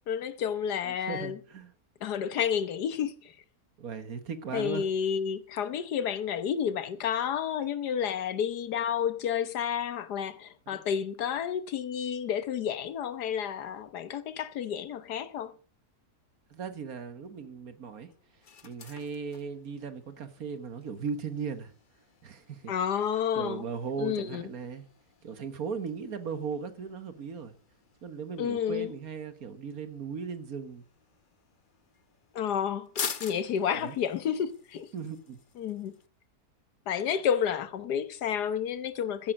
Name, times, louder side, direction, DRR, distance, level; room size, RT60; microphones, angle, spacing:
voice 1, 0.1-1.4 2.0-3.1 4.5-15.5 22.7-23.7 24.0-24.5 28.4-28.9 32.3-32.9 33.2-34.9 35.6-36.0 36.9-39.3, left 8 dB, 85° left, 1.6 m, -30 dB
voice 2, 0.8-1.7 3.8-4.8 16.5-18.1 18.6-21.7 22.2-22.7 23.4-24.8 25.2-27.5 28.0-30.8 33.8-34.0 34.9-35.4, right 6 dB, 65° right, 1.8 m, -37 dB
sound 1, 16.5-36.1, left 6 dB, 40° left, 0.8 m, -47 dB
14.0 x 10.5 x 5.2 m
omnidirectional pair, 1.7 m